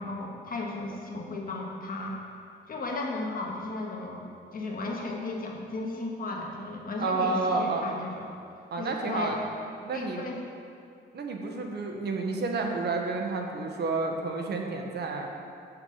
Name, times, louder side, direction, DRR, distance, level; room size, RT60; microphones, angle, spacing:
voice 1, 0.0-2.2 2.7-8.3 8.8-9.4 9.9-10.4, left 2 dB, 45° left, -1 dB, 1.6 m, -35 dB
voice 2, 7.0-8.0 8.7-9.4 9.8-10.2 11.1-15.3, right 3 dB, 55° right, 2 dB, 1.2 m, -30 dB
7.4 x 5.9 x 6.7 m, 2.4 s
cardioid pair, 90°, 20 cm